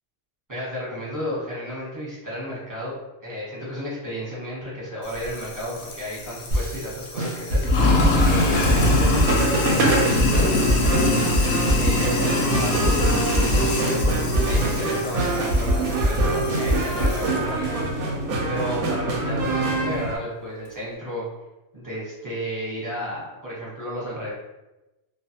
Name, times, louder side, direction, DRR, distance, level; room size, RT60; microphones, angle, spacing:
voice 1, 0.5-2.9 3.2-11.2 11.8-18.1 18.5-21.3 21.7-24.3, equal, 15° right, -8 dB, 0.9 m, -32 dB
Sink (filling or washing), 5.1-17.4, left 2 dB, 70° left, 0.8 m, -26 dB
sound 1, 6.5-6.9 7.2-9.5 9.8-12.2 12.5-14.9 15.2-17.2, equal, 45° right, 0.7 m, -23 dB
sound 2, 7.8-20.2, right 1 dB, 90° right, 1.1 m, -25 dB
2.4 x 2.4 x 2.7 m, 1.0 s
omnidirectional pair, 1.5 m